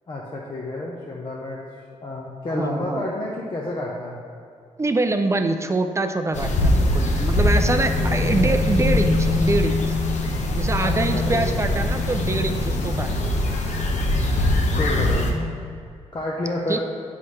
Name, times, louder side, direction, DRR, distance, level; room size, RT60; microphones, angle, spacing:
voice 1, 0.1-1.6 2.0-4.2 7.9-8.7 10.8-11.7 14.7-15.3 16.1-16.8, left 2 dB, 35° left, -3 dB, 0.8 m, -30 dB
voice 2, 2.5-3.1 4.8-10.0 10.5-13.3 14.2-14.3 16.7-16.8, right 2 dB, 25° right, 7 dB, 0.4 m, -24 dB
sound 1, 6.3-15.3, left 2 dB, 65° left, 0.8 m, -22 dB
7.7 x 5.6 x 3.2 m, 2.3 s
cardioid pair, 90°, 13 cm